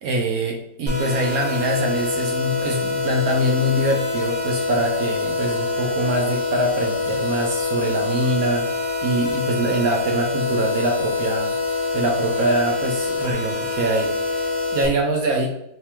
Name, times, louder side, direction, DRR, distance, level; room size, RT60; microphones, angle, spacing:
voice 1, 0.0-11.5 11.9-14.4 14.7-15.5, right 1 dB, 70° right, 0 dB, 0.9 m, -24 dB
sound 1, 0.9-14.9, left 3 dB, 35° right, 0.4 m, -25 dB
3.4 x 3.2 x 2.9 m, 0.83 s
omnidirectional pair, 2.0 m